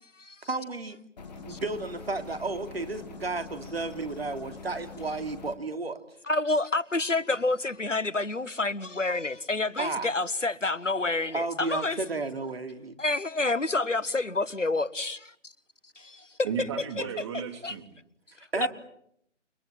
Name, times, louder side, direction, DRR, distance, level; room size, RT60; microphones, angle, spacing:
voice 1, 0.4-1.0 1.4-6.0 9.8-10.1 11.3-13.0 18.5-18.7, right 3 dB, 55° right, 3.2 m, -33 dB
sound 1, 1.2-5.6, left 4 dB, 35° left, 2.6 m, -44 dB
voice 2, 6.3-12.0 13.0-15.5 16.0-16.3 17.6-17.7 18.4-18.7, left 2 dB, 80° left, 1.5 m, -28 dB
voice 3, 16.4-17.8 18.6-18.7, right 7 dB, 25° right, 3.2 m, -34 dB
29.0 x 22.0 x 8.9 m
figure-of-eight pair, 150°, 36 cm